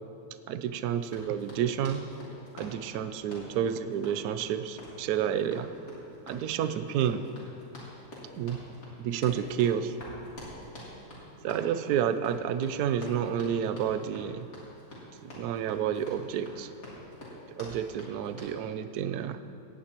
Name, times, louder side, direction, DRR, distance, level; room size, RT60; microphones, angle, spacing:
voice 1, 0.5-2.1 2.5-5.7 6.3-7.3 8.3-8.6 9.0-10.0 11.4-14.5 15.2-16.7 17.6-19.4, right 9 dB, 70° right, 11 dB, 1.1 m, -30 dB
Run, 1.0-18.6, equal, 60° left, 3.6 m, -47 dB
17.5 x 16.0 x 3.0 m, 2.6 s
omnidirectional pair, 1.9 m